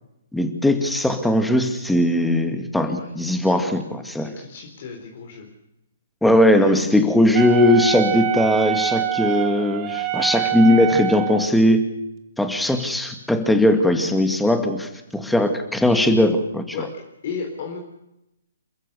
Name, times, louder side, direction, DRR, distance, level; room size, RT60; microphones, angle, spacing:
voice 1, 0.3-4.3 6.2-11.8 12.4-16.8, left 1 dB, 5° left, 6 dB, 2.2 m, -19 dB
voice 2, 4.2-5.5 16.7-17.8, left 5 dB, 50° left, 3 dB, 4.0 m, -34 dB
Wind instrument woodwind instrument, 7.3-11.5, right 13 dB, 30° right, 1.8 m, -25 dB
28.5 x 14.5 x 6.9 m, 0.88 s
figure-of-eight pair, 125°, 0 cm